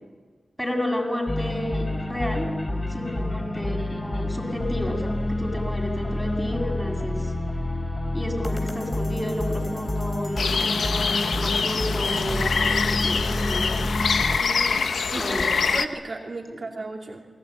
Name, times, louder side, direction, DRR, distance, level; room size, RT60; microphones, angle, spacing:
voice 1, 0.6-1.8 2.1-2.5 2.9-7.3 8.1-13.8 15.2-15.6, left 1 dB, 10° left, 0 dB, 7.5 m, -31 dB
sound 1, 1.3-14.4, left 1 dB, 25° left, 3.6 m, -28 dB
sound 2, 10.4-15.9, left 5 dB, 85° left, 1.1 m, -25 dB
voice 2, 14.4-17.3, right 3 dB, 50° right, 0 dB, 2.7 m, -36 dB
29.0 x 20.0 x 9.3 m, 1.4 s
wide cardioid pair, 75°, 0 cm